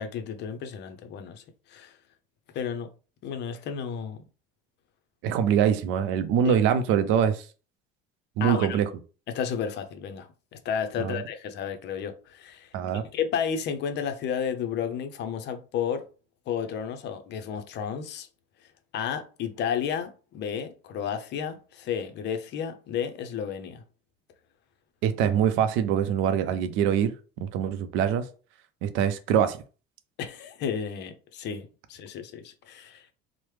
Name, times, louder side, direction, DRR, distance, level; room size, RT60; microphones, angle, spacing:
voice 1, 0.0-1.4 1.7-1.9 2.5-2.9 3.2-4.2 6.4-6.5 8.4-8.8 9.3-16.0 16.5-18.3 18.9-23.8 30.2-33.1, left 7 dB, 55° left, 0.6 m, -32 dB
voice 2, 5.2-7.5 8.4-8.9 11.0-11.2 12.7-13.0 25.0-27.2 27.4-28.3 28.8-29.6, right 8 dB, 70° right, 0.5 m, -24 dB
3.0 x 2.0 x 3.2 m
supercardioid pair, 95°, 21 cm